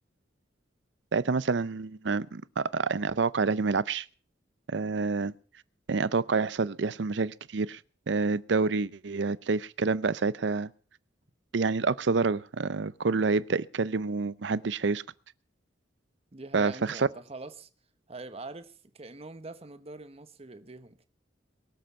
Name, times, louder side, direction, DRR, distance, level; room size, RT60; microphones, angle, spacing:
voice 1, 1.1-4.1 4.7-5.3 5.9-7.8 8.1-10.7 11.5-15.0 16.5-17.1, right 4 dB, 70° right, 0.6 m, -28 dB
voice 2, 16.3-17.7 18.1-21.1, right 3 dB, 35° right, 1.1 m, -44 dB
23.0 x 7.8 x 5.5 m
head